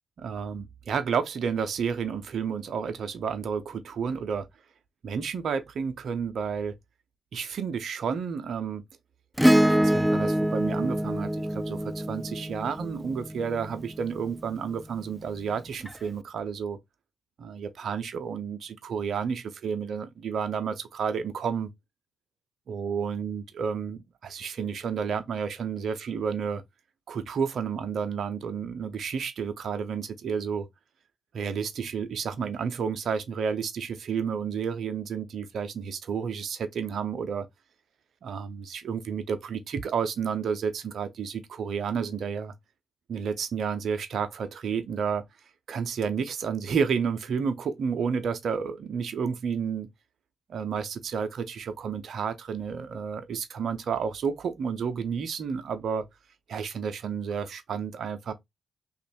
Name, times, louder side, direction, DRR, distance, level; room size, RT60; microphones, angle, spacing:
voice 1, 0.2-4.5 5.0-6.7 7.3-8.8 9.7-16.8 17.4-21.7 22.7-26.6 27.1-30.7 31.3-37.5 38.2-42.5 43.1-45.2 45.7-49.9 50.5-56.0 56.5-58.3, right 6 dB, 65° right, 0.6 m, -31 dB
Acoustic guitar / Strum, 9.4-14.0 15.9-16.0, equal, 5° right, 0.3 m, -25 dB
3.1 x 2.5 x 4.2 m
hypercardioid pair, 45°, 0 cm